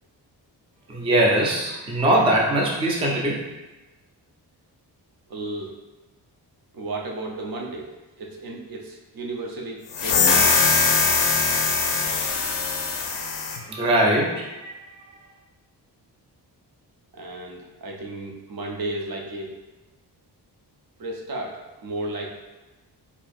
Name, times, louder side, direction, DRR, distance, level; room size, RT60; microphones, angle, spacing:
voice 1, 0.9-3.4 13.5-14.7, right 1 dB, 15° right, -2 dB, 0.3 m, -21 dB
voice 2, 5.3-5.8 6.7-7.9 8.2-10.6 17.1-19.5 21.0-22.3, right 2 dB, 55° right, 0 dB, 0.6 m, -33 dB
sound 1, 9.9-13.6, left 4 dB, 85° left, 0.6 m, -21 dB
4.3 x 2.6 x 2.4 m, 1.1 s
wide cardioid pair, 135°, 41 cm